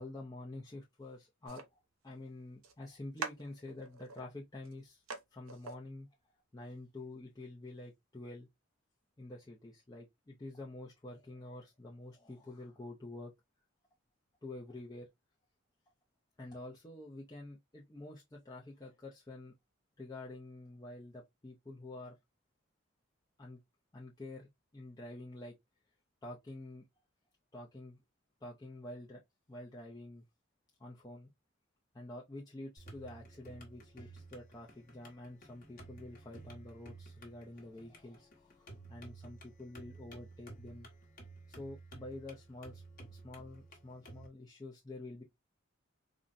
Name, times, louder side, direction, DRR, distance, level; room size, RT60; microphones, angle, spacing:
voice 1, 0.0-5.0 5.3-6.1 6.5-8.5 9.2-13.3 14.4-15.1 16.4-19.5 20.0-22.1 23.4-23.6 23.9-25.5 26.2-26.9 27.5-28.0 28.4-29.2 29.5-30.2 30.8-31.3 31.9-40.9 41.5-42.8 43.1-45.2, left 2 dB, 20° left, 0.5 m, -48 dB
sound 1, 1.5-1.7 2.6-2.7 3.2-4.2 4.7-4.8 5.1-5.2 5.5-5.8, right 5 dB, 85° right, 0.6 m, -43 dB
sound 2, 32.8-44.3, right 2 dB, 40° left, 1.0 m, -53 dB
3.8 x 2.1 x 2.4 m
head